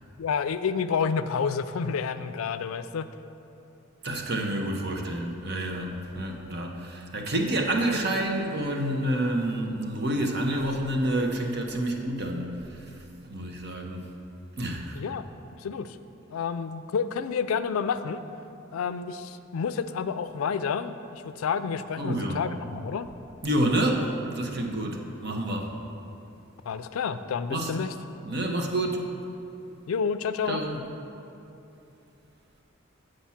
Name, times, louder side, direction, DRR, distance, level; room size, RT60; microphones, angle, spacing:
voice 1, 0.2-3.1 14.9-15.3 15.6-16.0 16.3-18.2 18.7-23.1 26.7-27.9 29.9-30.6, left 6 dB, 80° left, 12 dB, 0.4 m, -29 dB
voice 2, 4.0-13.0 13.3-14.1 14.6-15.0 22.0-22.4 23.4-25.7 27.5-27.7 28.2-29.1 30.5-30.8, right 1 dB, 55° right, 2 dB, 0.9 m, -28 dB
8.4 x 5.1 x 5.7 m, 2.8 s
head